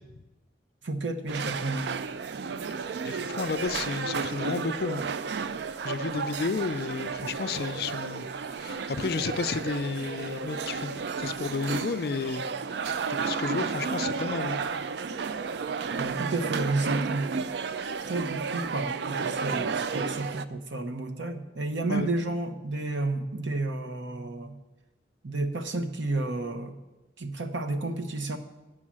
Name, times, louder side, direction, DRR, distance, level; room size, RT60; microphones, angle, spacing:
voice 1, 0.8-1.9 16.0-17.3 18.0-24.6 25.2-26.8 27.2-28.4, right 2 dB, 85° right, 7 dB, 0.9 m, -31 dB
sound 1, 1.3-20.5, right 5 dB, 65° right, 0.4 m, -32 dB
voice 2, 3.0-5.0 5.8-8.3 8.6-12.4 13.1-14.6 21.9-22.1, left 4 dB, 55° left, 12 dB, 0.4 m, -32 dB
8.7 x 6.3 x 7.4 m, 1.1 s
head